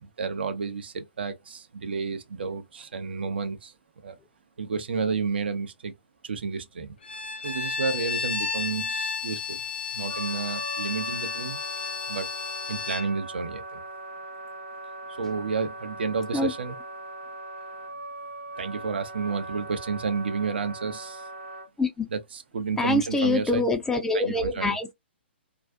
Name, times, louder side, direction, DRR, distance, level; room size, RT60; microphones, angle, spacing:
voice 1, 0.0-3.7 4.0-4.2 4.6-5.9 6.2-6.9 7.4-9.6 9.9-11.6 12.1-12.3 12.7-13.8 15.1-16.8 18.6-21.3 22.1-23.6 24.1-24.8, right 5 dB, 60° right, 0.5 m, -31 dB
Bowed string instrument, 7.0-13.1, left 6 dB, 65° left, 0.5 m, -32 dB
Wind instrument woodwind instrument, 10.1-21.7, right 2 dB, 80° right, 0.9 m, -40 dB
voice 2, 22.8-24.9, left 2 dB, 5° left, 0.4 m, -25 dB
2.4 x 2.3 x 2.2 m
figure-of-eight pair, 120°, 6 cm